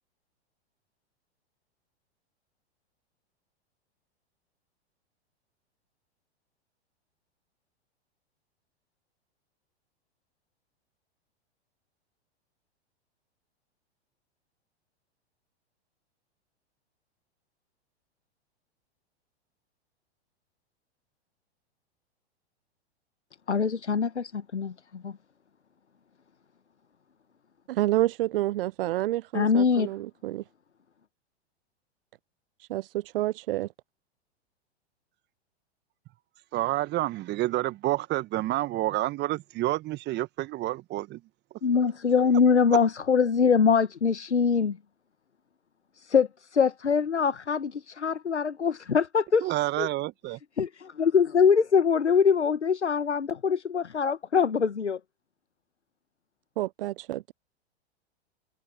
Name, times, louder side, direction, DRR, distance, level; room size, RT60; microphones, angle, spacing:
voice 1, 23.5-25.1 29.3-29.9 41.6-44.8 46.0-49.9 50.6-55.0, left 6 dB, 85° left, 1.3 m, -23 dB
voice 2, 27.7-30.4 32.6-33.7 56.6-57.3, right 16 dB, 55° right, 0.5 m, -29 dB
voice 3, 36.5-41.2 49.4-50.4, right 16 dB, 30° right, 1.4 m, -29 dB
figure-of-eight pair, 100°, 33 cm